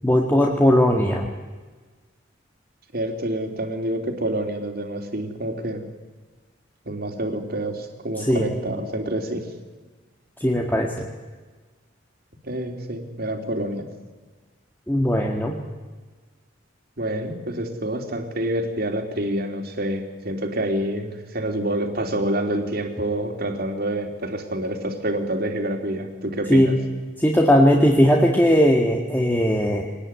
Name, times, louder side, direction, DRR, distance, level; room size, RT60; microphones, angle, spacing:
voice 1, 0.0-1.3 8.2-8.5 10.4-11.1 14.9-15.6 26.5-26.8 27.2-29.9, equal, 10° left, 0 dB, 1.9 m, -18 dB
voice 2, 2.9-5.8 6.8-9.5 12.4-13.8 17.0-26.8, right 1 dB, 55° right, 4 dB, 3.3 m, -27 dB
24.0 x 19.5 x 9.9 m, 1.4 s
head